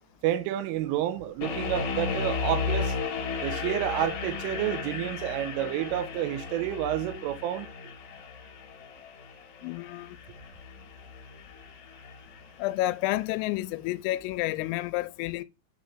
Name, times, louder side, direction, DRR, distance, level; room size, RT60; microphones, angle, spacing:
voice 1, 0.2-3.0 3.4-7.7, right 12 dB, 85° right, 3.1 m, -29 dB
sound 1, 1.4-12.5, left 5 dB, 55° left, 3.1 m, -35 dB
voice 2, 9.6-10.2 12.6-15.4, left 16 dB, 90° left, 3.3 m, -30 dB
9.0 x 3.2 x 5.6 m
omnidirectional pair, 5.9 m